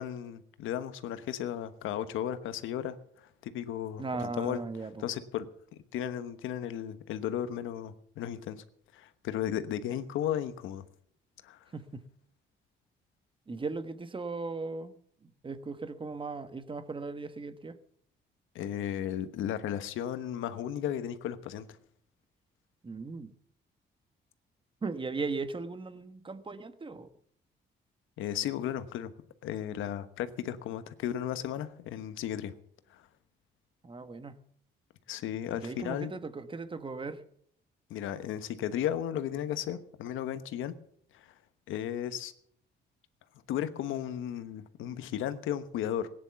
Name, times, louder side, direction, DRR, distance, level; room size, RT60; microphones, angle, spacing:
voice 1, 0.0-4.0 4.4-4.6 5.0-5.5 5.9-8.6 8.9-10.8 11.4-11.6 18.5-21.7 28.2-29.1 29.4-32.5 32.9-33.0 35.1-36.1 37.9-40.7 41.1-41.3 41.7-42.3 43.5-46.1, left 10 dB, 85° left, 12 dB, 1.2 m, -34 dB
voice 2, 4.0-5.0 11.7-12.1 13.5-15.0 15.4-17.8 22.8-23.3 24.8-27.1 33.8-34.4 35.5-37.2, right 3 dB, 25° right, 11 dB, 1.3 m, -37 dB
16.5 x 10.0 x 7.0 m, 0.66 s
cardioid pair, 90°, 20 cm